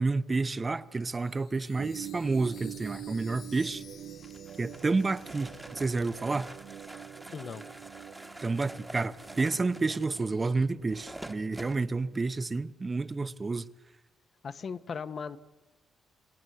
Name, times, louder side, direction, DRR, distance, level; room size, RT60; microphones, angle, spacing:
voice 1, 0.0-3.8 4.6-6.5 8.4-13.7, right 3 dB, 25° right, 0.8 m, -30 dB
Chime, 1.1-6.6, left 7 dB, 65° left, 1.5 m, -55 dB
sound 1, 1.8-12.4, right 11 dB, 70° right, 0.7 m, -46 dB
sound 2, 4.2-11.8, right 1 dB, 10° right, 1.4 m, -47 dB
voice 2, 7.3-7.7 14.4-15.4, left 6 dB, 45° left, 1.1 m, -37 dB
27.0 x 18.5 x 7.9 m
cardioid pair, 90°, 0 cm